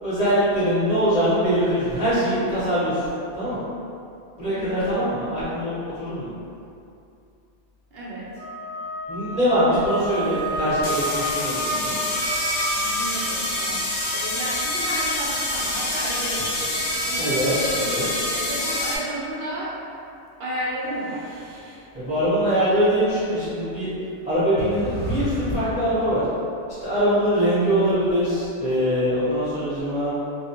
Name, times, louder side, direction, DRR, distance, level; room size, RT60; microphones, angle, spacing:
voice 1, 0.0-3.0 3.3-3.6 4.4-6.3 9.1-12.0 17.2-18.1 21.9-23.9 24.2-26.2 26.8-30.1, equal, 5° right, -13 dB, 0.6 m, -22 dB
voice 2, 4.5-5.0 7.9-8.4 12.7-17.3 18.3-19.8 20.4-21.4, right 1 dB, 65° right, -8 dB, 0.7 m, -33 dB
Wind instrument woodwind instrument, 8.3-13.1, left 1 dB, 65° left, 0.4 m, -30 dB
sound 1, 10.0-10.1 10.8-19.0, left 1 dB, 90° left, 1.0 m, -26 dB
sound 2, 15.4-15.7 16.4-18.4 20.8-21.8 23.4-23.5 24.6-26.1, right 1 dB, 90° right, 1.0 m, -36 dB
2.5 x 2.1 x 2.8 m, 2.6 s
omnidirectional pair, 1.3 m